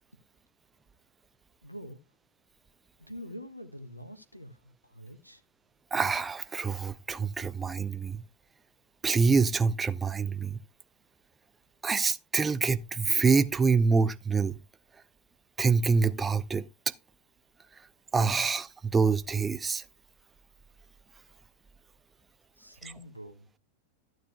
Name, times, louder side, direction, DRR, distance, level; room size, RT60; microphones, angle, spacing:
voice 1, 1.6-2.0 3.0-5.4 22.6-23.5, equal, 90° left, 1.1 m, -45 dB
voice 2, 5.9-8.2 9.0-10.6 11.8-14.6 15.6-16.6 18.1-19.8, right 4 dB, 15° right, 0.5 m, -26 dB
14.5 x 9.2 x 2.2 m
figure-of-eight pair, 90°, 0 cm